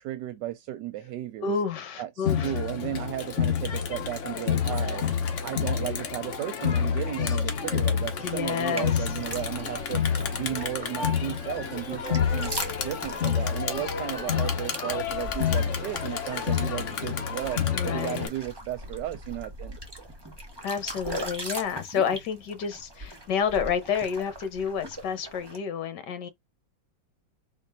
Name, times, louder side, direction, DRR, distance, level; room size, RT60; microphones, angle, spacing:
voice 1, 0.0-1.5 2.0-5.1 5.4-10.0 10.3-12.5 12.8-19.8, right 14 dB, 70° right, 1.1 m, -34 dB
voice 2, 1.4-2.6 8.2-9.1 17.7-18.3 20.6-26.3, left 7 dB, 65° left, 1.6 m, -29 dB
Crowd, 2.3-18.3, left 7 dB, 50° left, 1.1 m, -28 dB
sound 1, 8.7-25.6, right 1 dB, 15° right, 1.0 m, -41 dB
4.6 x 2.8 x 4.0 m
omnidirectional pair, 2.1 m